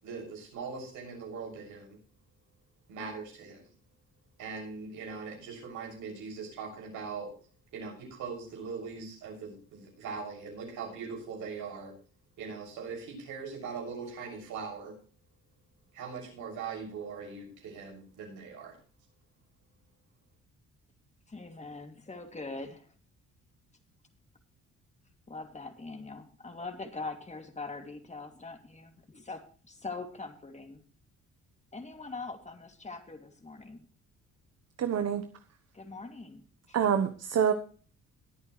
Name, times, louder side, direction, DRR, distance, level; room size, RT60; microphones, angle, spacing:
voice 1, 0.0-2.0 2.9-3.6 4.4-7.3 7.7-11.9 12.4-14.9 15.9-18.8, right 5 dB, 90° right, 6.7 m, -41 dB
voice 2, 21.3-22.9 25.3-30.8 31.7-33.8 35.7-36.4 36.7-36.8, left 3 dB, 25° left, 2.7 m, -42 dB
voice 3, 34.8-35.3 36.7-37.5, right 8 dB, 55° right, 1.1 m, -26 dB
21.5 x 8.8 x 3.2 m
cardioid pair, 90°, 30 cm